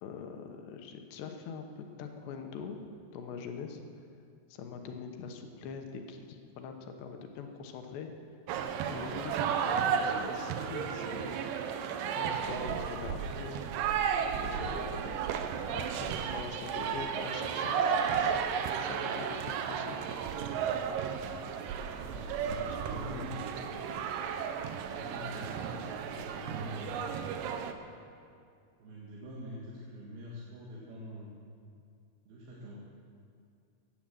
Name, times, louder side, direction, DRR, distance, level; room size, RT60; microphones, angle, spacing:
voice 1, 0.0-2.8 3.1-3.8 4.5-8.1 8.9-11.6 12.1-13.6 14.4-15.1 15.7-18.4 18.8-20.2 22.6-23.4, left 6 dB, 80° left, 5 dB, 3.3 m, -43 dB
sound 1, 8.5-27.7, right 7 dB, 80° right, 1.9 m, -33 dB
voice 2, 21.8-23.6 24.8-27.0 28.8-31.3 32.3-32.8, equal, 65° right, -6 dB, 3.6 m, -45 dB
16.0 x 10.5 x 7.5 m, 2.4 s
omnidirectional pair, 5.0 m